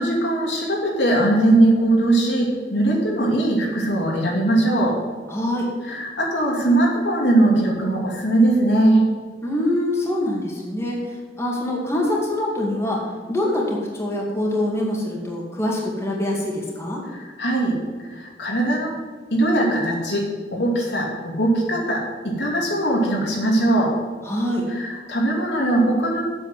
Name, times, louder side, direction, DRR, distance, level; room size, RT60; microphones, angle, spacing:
voice 1, 0.0-5.0 5.9-9.0 17.1-17.8 18.1-19.0 19.3-20.2 20.5-23.9 24.7-26.2, right 1 dB, 85° left, -2 dB, 2.8 m, -20 dB
voice 2, 5.3-5.7 9.4-17.0 24.2-24.7, left 1 dB, 15° left, -3 dB, 2.2 m, -24 dB
8.0 x 7.4 x 7.6 m, 1.5 s
head